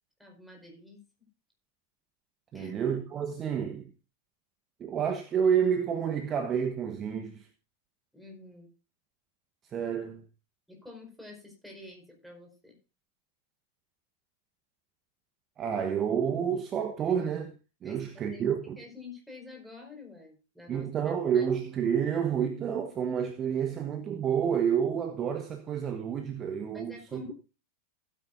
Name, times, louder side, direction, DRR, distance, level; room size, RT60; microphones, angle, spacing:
voice 1, 0.2-1.0 2.5-2.8 8.1-8.7 10.7-12.8 17.8-18.5 18.8-21.5 26.7-27.3, left 3 dB, ahead, 4.9 m, -48 dB
voice 2, 2.5-3.9 4.8-7.5 9.7-10.2 15.6-17.5 17.8-18.8 20.7-27.2, right 8 dB, 25° right, 1.2 m, -29 dB
16.0 x 9.4 x 2.6 m
figure-of-eight pair, 90°, 0 cm